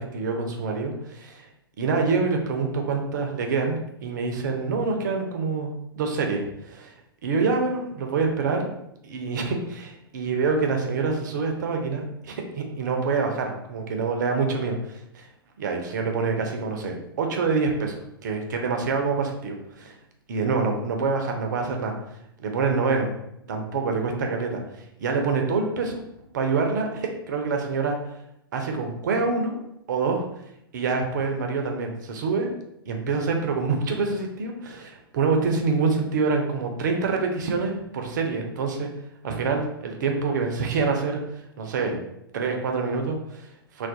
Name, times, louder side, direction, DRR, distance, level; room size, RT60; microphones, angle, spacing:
voice 1, 0.0-1.5 1.8-5.7 6.0-6.9 7.2-8.7 9.0-15.3 15.6-20.0 20.3-21.9 22.4-23.1 23.5-26.0 26.3-28.0 28.5-29.6 29.9-30.2 30.7-32.5 32.9-38.9 39.2-42.0 42.3-43.9, right 4 dB, 50° right, 3 dB, 0.4 m, -26 dB
2.3 x 2.1 x 2.6 m, 0.81 s
figure-of-eight pair, 105°, 13 cm